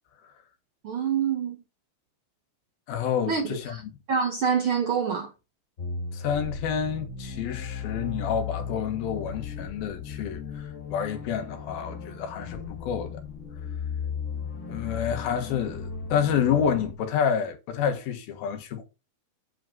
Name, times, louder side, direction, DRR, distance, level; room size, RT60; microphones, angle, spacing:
voice 1, 0.8-1.6 3.3-3.8 4.1-5.3, right 6 dB, 60° right, 1.4 m, -26 dB
voice 2, 2.9-3.8 6.1-13.2 14.7-18.8, left 8 dB, 90° left, 3.4 m, -29 dB
sound 1, 5.8-16.9, left 6 dB, 55° left, 0.8 m, -36 dB
8.8 x 8.0 x 3.8 m
omnidirectional pair, 4.1 m